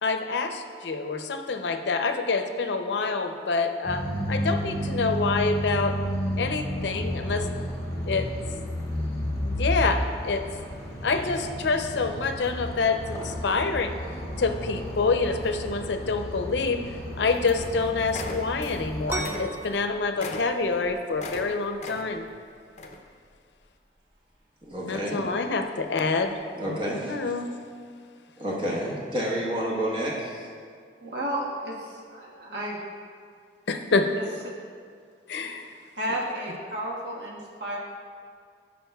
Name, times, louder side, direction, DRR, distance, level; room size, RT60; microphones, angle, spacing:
voice 1, 0.0-6.0 6.4-7.5 8.0-8.3 9.4-10.4 11.0-13.9 14.4-22.2 24.8-26.4 27.0-27.5 33.7-34.1 35.3-35.7, left 4 dB, 85° left, 7 dB, 0.5 m, -27 dB
sound 1, 3.8-19.3, equal, 20° left, 1.7 m, -32 dB
sound 2, 17.3-17.8 18.1-18.8 19.1-21.5 21.8-22.3 22.8-23.0, left 2 dB, 40° left, 0.6 m, -38 dB
sound 3, 19.1-26.5, right 3 dB, 15° right, 0.4 m, -41 dB
voice 2, 24.6-25.2 26.5-27.1 28.4-30.5, equal, 30° right, -4 dB, 1.2 m, -29 dB
voice 3, 31.0-32.8 34.2-34.3 36.0-37.8, right 1 dB, 85° right, -3 dB, 1.5 m, -32 dB
15.5 x 5.2 x 2.3 m, 2.1 s
head